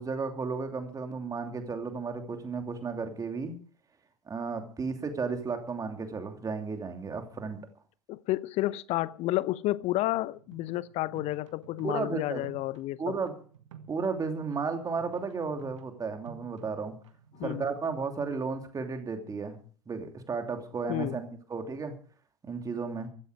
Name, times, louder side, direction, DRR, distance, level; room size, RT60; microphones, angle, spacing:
voice 1, 0.0-3.5 4.3-7.6 11.8-12.4 13.0-13.3 13.9-16.9 17.4-19.6 19.9-21.9 22.4-23.1, right 4 dB, 20° right, 2.9 m, -33 dB
voice 2, 8.1-13.2 17.3-17.6 20.9-21.2, left 17 dB, 40° left, 0.8 m, -31 dB
sound 1, 10.1-18.5, right 8 dB, 65° right, 1.8 m, -52 dB
15.5 x 14.0 x 5.0 m
figure-of-eight pair, 75°, 17 cm